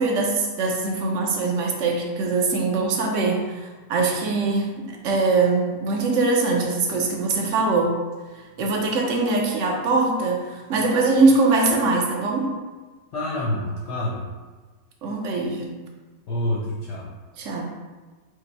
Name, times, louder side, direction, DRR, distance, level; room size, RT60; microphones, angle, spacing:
voice 1, 0.0-8.0 8.6-12.5 15.0-15.8 17.4-17.7, right 3 dB, 60° right, 0 dB, 0.9 m, -22 dB
voice 2, 13.1-14.3 16.3-17.1, left 1 dB, 55° left, -4 dB, 0.7 m, -27 dB
5.0 x 2.2 x 4.4 m, 1.3 s
omnidirectional pair, 1.9 m